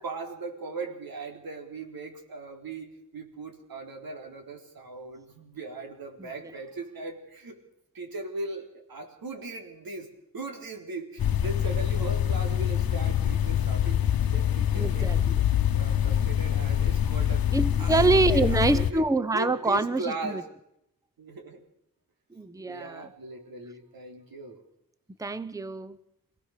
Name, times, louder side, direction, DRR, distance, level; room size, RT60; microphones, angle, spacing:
voice 1, 0.0-7.6 7.9-10.1 10.3-14.0 14.3-15.1 15.8-17.4 17.8-20.4 21.2-21.6 22.7-24.6, right 2 dB, 85° right, 4.0 m, -38 dB
voice 2, 6.2-6.5 14.7-15.4 17.5-20.4 22.3-23.1 25.2-26.0, right 3 dB, 10° right, 0.8 m, -26 dB
sound 1, 11.2-18.9, left 10 dB, 90° left, 1.0 m, -25 dB
26.5 x 17.0 x 6.7 m
wide cardioid pair, 130°, 34 cm